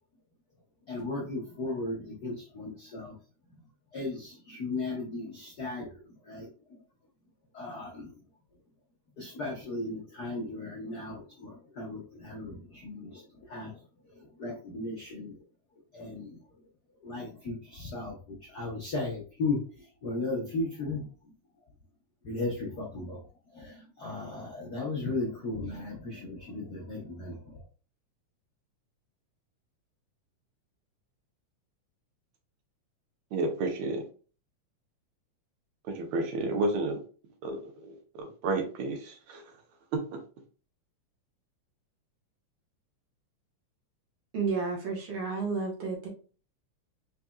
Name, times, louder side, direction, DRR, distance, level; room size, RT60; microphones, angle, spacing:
voice 1, 0.9-3.2 3.9-6.8 7.5-8.1 9.2-15.4 15.9-16.4 17.0-21.1 22.2-27.6, left 2 dB, 80° left, 0.8 m, -36 dB
voice 2, 33.3-34.0 35.9-37.0 37.4-39.4 39.9-40.2, right 2 dB, 75° right, 2.1 m, -31 dB
voice 3, 44.3-46.1, right 4 dB, 55° right, 1.7 m, -31 dB
4.7 x 4.1 x 2.3 m
omnidirectional pair, 3.4 m